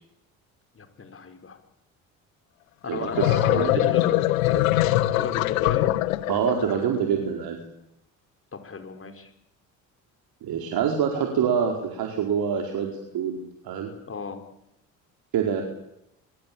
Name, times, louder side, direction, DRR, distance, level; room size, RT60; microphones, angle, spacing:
voice 1, 0.7-1.6 2.8-5.9 8.5-9.3 14.1-14.4, left 5 dB, 35° left, 7 dB, 5.3 m, -34 dB
sound 1, 2.9-6.8, left 16 dB, 85° left, 1.2 m, -23 dB
voice 2, 2.9-3.7 6.3-7.6 10.4-13.4 13.6-13.9 15.3-15.6, right 7 dB, 60° right, 3 dB, 4.8 m, -26 dB
25.0 x 22.5 x 8.8 m, 0.81 s
hypercardioid pair, 60°, 40 cm